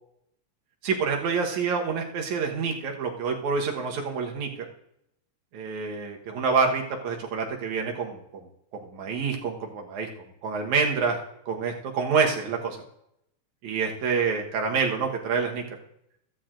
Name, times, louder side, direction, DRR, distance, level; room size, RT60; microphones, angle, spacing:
voice 1, 0.8-4.5 5.5-8.5 8.7-10.1 10.4-11.2 11.5-12.8 13.6-15.6, right 5 dB, 70° right, 1 dB, 2.6 m, -27 dB
14.0 x 13.5 x 2.6 m, 0.76 s
omnidirectional pair, 3.5 m